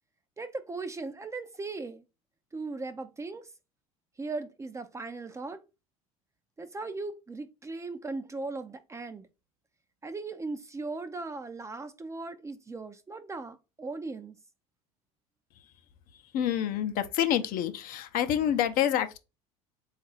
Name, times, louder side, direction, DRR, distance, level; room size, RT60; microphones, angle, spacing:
voice 1, 0.4-2.0 2.5-3.5 4.2-5.6 6.6-9.3 10.0-14.4, right 3 dB, 15° right, 0.5 m, -38 dB
voice 2, 16.3-19.2, left 10 dB, 50° left, 0.6 m, -27 dB
3.9 x 2.4 x 4.4 m
hypercardioid pair, 75°, 18 cm